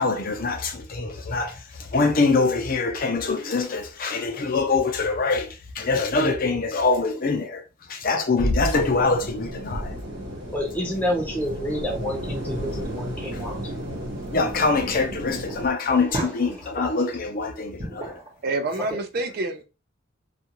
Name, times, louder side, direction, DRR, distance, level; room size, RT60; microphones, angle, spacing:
voice 1, 0.0-1.6 1.9-7.6 7.9-9.9 14.3-18.1, left 3 dB, 50° left, 0.6 m, -24 dB
sound 1, 8.4-9.1 9.6-10.6, equal, 90° left, 0.6 m, -28 dB
sound 2, 8.8-15.7, equal, 75° right, 1.0 m, -34 dB
voice 2, 10.3-13.7, equal, 10° left, 0.7 m, -29 dB
sound 3, 11.8-17.2 17.7-18.4, right 1 dB, 35° right, 1.0 m, -37 dB
voice 3, 18.4-19.6, right 2 dB, 50° right, 0.5 m, -27 dB
2.4 x 2.4 x 2.9 m
head